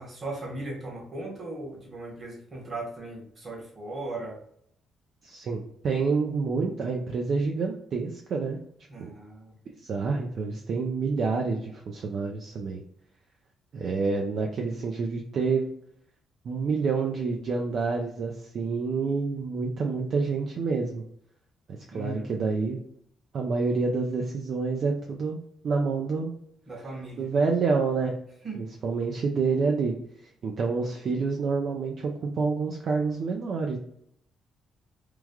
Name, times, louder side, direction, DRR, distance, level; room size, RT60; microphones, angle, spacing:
voice 1, 0.0-4.4 8.9-9.5 21.9-22.3 26.7-27.3 28.4-28.6, right 2 dB, 35° right, -1 dB, 1.3 m, -37 dB
voice 2, 5.2-8.6 9.0-9.1 9.8-12.8 13.7-15.7 16.4-21.0 21.7-22.8 23.3-25.4 25.6-26.3 27.2-28.2 28.6-33.8, right 4 dB, 60° right, 1 dB, 0.4 m, -28 dB
3.1 x 2.3 x 2.3 m, 0.68 s
cardioid pair, 90°, 0 cm